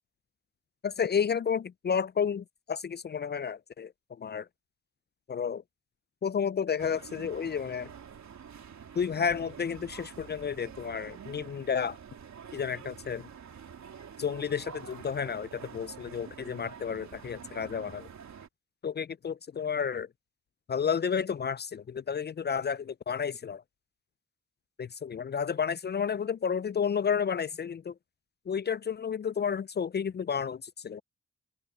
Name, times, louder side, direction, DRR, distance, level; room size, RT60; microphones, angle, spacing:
voice 1, 0.8-3.9 4.2-4.5 5.3-5.6 6.2-7.9 9.0-12.0 12.5-13.3 14.2-18.1 18.8-20.1 20.7-23.6 24.8-27.9 28.5-31.0, left 7 dB, 35° left, 0.4 m, -31 dB
sound 1, 6.8-18.5, right 7 dB, 65° right, 3.3 m, -47 dB
open air
supercardioid pair, 45°, 30 cm